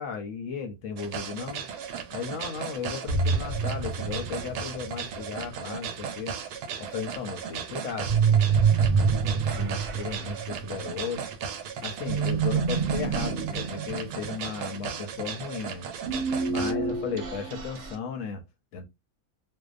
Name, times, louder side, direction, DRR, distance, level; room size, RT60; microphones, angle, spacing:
voice 1, 0.0-1.7 2.1-6.3 6.8-8.7 9.1-11.3 11.8-15.9 16.5-18.4 18.7-18.9, left 6 dB, 65° left, 0.9 m, -35 dB
sound 1, 1.0-16.7, right 7 dB, 85° right, 1.1 m, -36 dB
sound 2, 3.1-5.3 8.1-11.1 12.1-15.0 16.1-18.0, right 5 dB, 55° right, 1.0 m, -27 dB
2.7 x 2.1 x 2.4 m
omnidirectional pair, 1.6 m